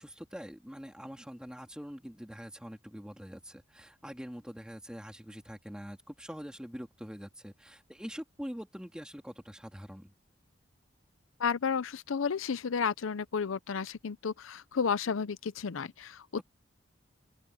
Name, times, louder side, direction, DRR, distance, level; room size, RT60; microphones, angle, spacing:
voice 1, 0.0-10.1, equal, 5° right, 2.8 m, -44 dB
voice 2, 11.4-16.4, left 6 dB, 90° left, 0.6 m, -32 dB
open air
head